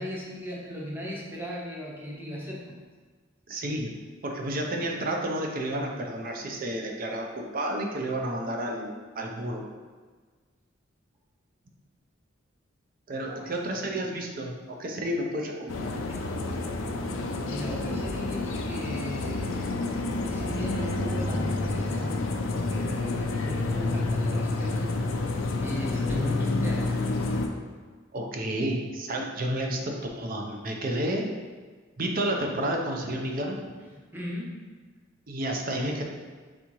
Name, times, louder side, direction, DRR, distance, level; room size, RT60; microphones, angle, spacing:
voice 1, 0.0-2.8 13.3-13.5 13.8-14.0 16.1-16.3 17.5-19.7 20.2-22.2 22.7-25.0 25.6-26.9 33.9-34.6, equal, 10° right, -4 dB, 0.7 m, -37 dB
voice 2, 3.5-3.9 4.2-9.7 13.1-16.0 28.1-31.3 32.0-33.7 35.3-36.0, right 1 dB, 45° right, 1 dB, 0.5 m, -31 dB
sound 1, 15.7-27.5, left 2 dB, 85° left, 0.4 m, -29 dB
4.2 x 3.5 x 3.0 m, 1.5 s
head